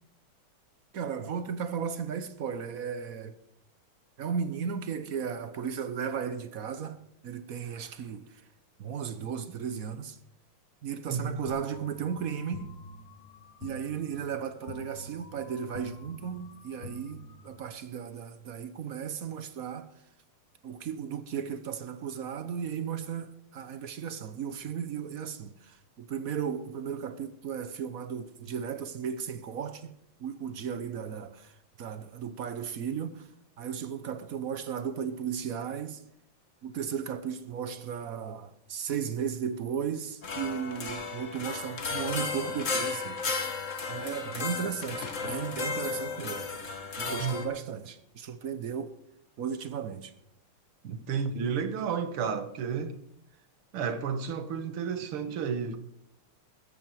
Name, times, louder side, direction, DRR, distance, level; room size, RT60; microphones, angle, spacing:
voice 1, 0.9-3.4 4.2-7.0 7.2-8.3 8.8-10.2 10.8-12.7 13.6-19.9 20.6-29.9 30.2-33.3 33.6-36.0 36.6-43.2 43.9-46.5 47.0-48.9 49.4-50.1 50.8-51.0, right 7 dB, 55° right, 1.1 m, -35 dB
voice 2, 11.1-11.4 47.2-47.3 50.9-52.9 53.7-55.8, right 6 dB, 80° right, 2.1 m, -31 dB
sound 1, 11.5-17.8, left 3 dB, 65° left, 1.8 m, -47 dB
sound 2, 40.2-47.5, left 4 dB, 40° left, 1.8 m, -34 dB
15.0 x 14.5 x 4.6 m
omnidirectional pair, 2.4 m